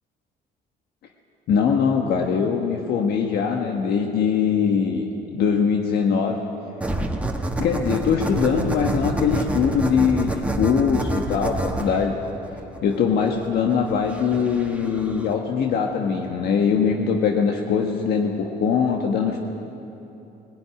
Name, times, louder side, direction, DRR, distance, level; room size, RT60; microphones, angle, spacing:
voice 1, 1.5-5.0 5.3-6.4 7.6-12.2 12.8-19.4, left 6 dB, 70° left, 2 dB, 1.5 m, -22 dB
sound 1, 6.8-15.3, right 2 dB, 10° right, 1.6 m, -28 dB
19.5 x 15.0 x 9.9 m, 3.0 s
cardioid pair, 110°, 17 cm